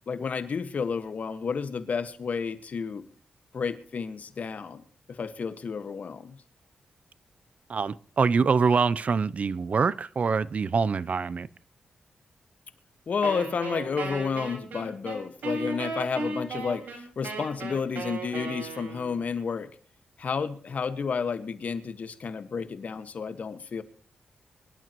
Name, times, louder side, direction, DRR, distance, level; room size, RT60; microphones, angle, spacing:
voice 1, 0.1-3.1 3.5-4.8 5.1-6.4 13.1-19.7 20.2-23.8, left 5 dB, 60° left, 1.7 m, -31 dB
voice 2, 7.7-11.5, right 5 dB, 55° right, 0.6 m, -25 dB
Wind instrument woodwind instrument, 13.2-19.2, right 3 dB, 85° right, 5.0 m, -35 dB
24.5 x 12.0 x 3.1 m
cardioid pair, 65°, 3 cm